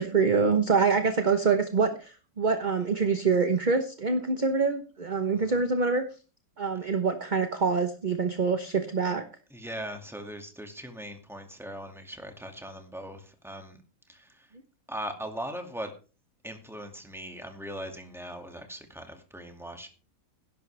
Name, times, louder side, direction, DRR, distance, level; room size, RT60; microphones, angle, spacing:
voice 1, 0.0-6.0 6.6-9.3, right 5 dB, 30° right, 7 dB, 0.9 m, -25 dB
voice 2, 9.5-13.8 14.1-14.5 14.9-15.9 16.4-19.9, equal, ahead, 4 dB, 2.1 m, -40 dB
18.0 x 11.0 x 3.4 m, 0.34 s
omnidirectional pair, 2.1 m